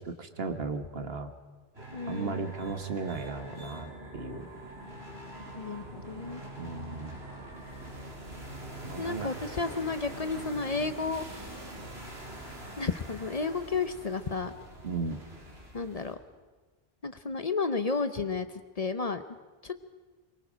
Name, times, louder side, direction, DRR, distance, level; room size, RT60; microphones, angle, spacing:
voice 1, 0.0-1.3 2.0-4.5 6.6-7.2 8.8-9.3 14.8-15.2, right 4 dB, 70° right, 8 dB, 1.6 m, -35 dB
sound 1, 1.7-16.1, right 1 dB, 85° right, 3.6 m, -44 dB
voice 2, 1.9-2.5 5.6-6.4 9.0-11.2 12.8-14.5 15.7-16.2 17.0-18.5 18.8-19.2 19.6-19.7, left 4 dB, 40° left, 10 dB, 0.8 m, -32 dB
23.5 x 23.0 x 5.1 m, 1.3 s
omnidirectional pair, 1.1 m